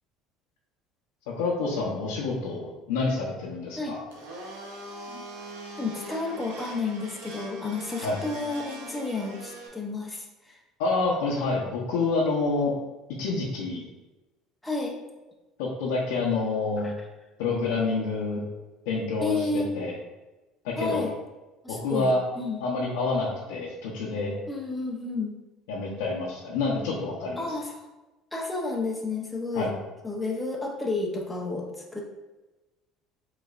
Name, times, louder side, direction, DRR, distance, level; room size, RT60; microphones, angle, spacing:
voice 1, 1.4-4.0 8.0-8.2 10.8-12.7 13.2-13.8 15.6-16.9 17.4-18.4 18.9-19.9 20.6-21.1 21.7-22.2 22.6-24.3 25.7-27.5 29.5-29.7, left 3 dB, 85° left, -4 dB, 0.8 m, -28 dB
Domestic sounds home sounds, 4.1-9.7, right 1 dB, 85° right, 0.9 m, -42 dB
voice 2, 5.8-10.5 14.6-15.0 16.8-16.9 19.2-19.7 20.8-21.1 21.6-22.6 24.5-25.3 27.4-27.8 28.3-29.7 30.0-31.7 31.9-32.0, left 3 dB, 10° left, -2 dB, 0.9 m, -31 dB
5.1 x 3.2 x 2.5 m, 1.1 s
supercardioid pair, 90°, 0 cm